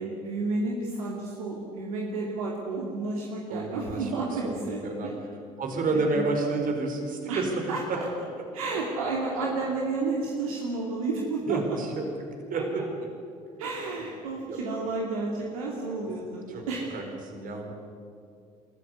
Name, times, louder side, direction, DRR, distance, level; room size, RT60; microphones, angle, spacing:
voice 1, 0.0-5.1 5.9-6.2 7.3-7.4 7.7-8.1 8.5-11.6 12.5-12.6 13.6-16.9, right 3 dB, 80° right, -2 dB, 2.6 m, -31 dB
voice 2, 3.5-5.1 5.6-8.0 8.4-8.5 11.5-12.1 12.5-12.8 14.5-14.6 16.0-16.6 16.9-17.7, right 3 dB, 50° right, 3 dB, 4.8 m, -30 dB
22.5 x 14.0 x 9.7 m, 2.4 s
hypercardioid pair, 60°, 18 cm